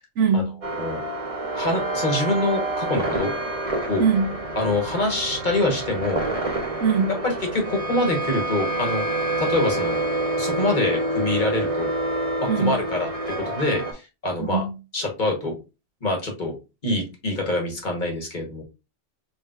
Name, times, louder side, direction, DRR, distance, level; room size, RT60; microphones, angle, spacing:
voice 1, 0.2-0.6 4.0-4.3 6.8-7.2 12.5-12.8 14.4-14.7, right 5 dB, 70° right, 1.1 m, -22 dB
sound 1, 0.6-13.9, right 2 dB, 30° right, 0.9 m, -27 dB
voice 2, 1.5-3.3 3.9-4.0 4.6-6.3 7.2-9.1 9.4-10.0 10.4-11.9 12.4-13.1 13.4-14.6 14.9-15.6 16.0-16.6 16.8-18.6, left 2 dB, 40° left, 1.2 m, -25 dB
4.4 x 3.2 x 2.4 m
omnidirectional pair, 1.3 m